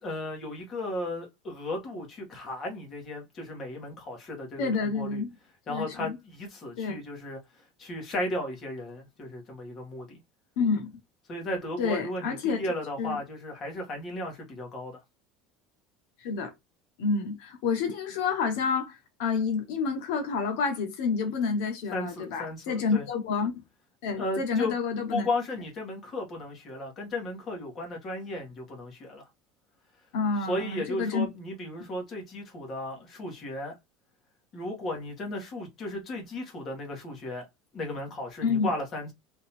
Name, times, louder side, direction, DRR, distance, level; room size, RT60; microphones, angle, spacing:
voice 1, 0.0-5.2 5.7-10.2 11.3-15.0 21.9-23.1 24.2-24.7 25.1-29.3 30.5-33.8 34.5-37.4 37.7-39.1, left 1 dB, 30° left, 1.6 m, -35 dB
voice 2, 4.6-5.3 5.7-6.1 6.8-7.0 10.6-10.9 11.8-12.6 13.0-13.2 16.2-16.5 17.0-23.6 24.0-25.3 30.1-31.3 38.4-38.7, left 5 dB, 70° left, 1.1 m, -29 dB
3.7 x 2.9 x 4.4 m
cardioid pair, 165°, 0 cm